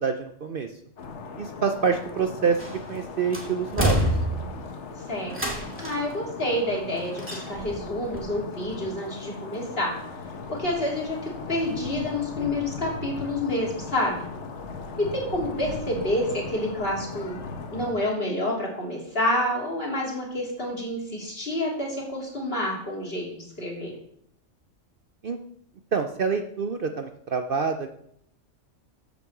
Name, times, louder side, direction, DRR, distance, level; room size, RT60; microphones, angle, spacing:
voice 1, 0.0-0.7 1.4-2.6 2.9-4.1 25.2-25.4 25.9-27.9, right 5 dB, 55° right, 7 dB, 0.8 m, -26 dB
sound 1, 1.0-17.9, left 4 dB, 65° left, 1.3 m, -38 dB
sound 2, 2.6-3.0 3.3-4.7 5.3-6.1 7.2-7.8 8.1-8.2, equal, 10° right, 2.2 m, -27 dB
voice 2, 5.1-9.9 10.5-14.3 15.1-17.4 17.7-23.9, left 1 dB, 50° left, -3 dB, 3.2 m, -28 dB
8.5 x 6.0 x 7.2 m, 0.70 s
omnidirectional pair, 1.3 m